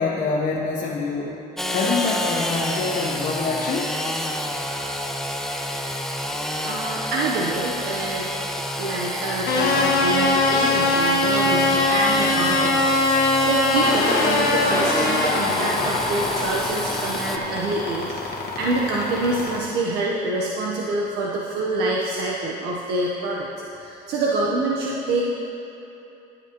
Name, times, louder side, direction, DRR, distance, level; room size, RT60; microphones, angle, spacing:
voice 1, 0.0-1.4 1.7-3.9 4.5-4.6, left 4 dB, 50° left, -3 dB, 0.8 m, -25 dB
Engine / Sawing, 1.6-17.4, left 1 dB, ahead, 0.6 m, -29 dB
voice 2, 6.6-8.2 8.8-18.3 18.6-23.5 23.8-25.2, right 2 dB, 75° right, -3 dB, 0.9 m, -26 dB
sound 1, 9.5-19.6, left 2 dB, 70° left, 1.4 m, -22 dB
14.5 x 7.9 x 2.9 m, 2.9 s
cardioid pair, 110°, 17 cm